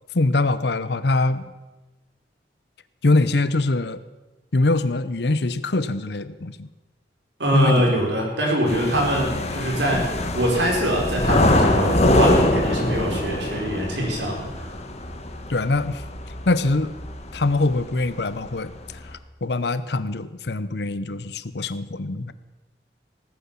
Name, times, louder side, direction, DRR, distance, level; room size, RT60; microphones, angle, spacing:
voice 1, 0.1-1.4 3.0-4.0 4.5-6.7 7.5-7.8 15.5-16.0 16.5-16.9 17.3-18.7 19.4-22.3, left 2 dB, 60° left, 15 dB, 0.7 m, -23 dB
voice 2, 7.4-14.7, equal, 75° right, -1 dB, 4.8 m, -23 dB
sound 1, 8.7-18.0 18.4-19.1, left 1 dB, 35° left, 1.6 m, -24 dB
17.5 x 9.6 x 7.4 m, 1.1 s
head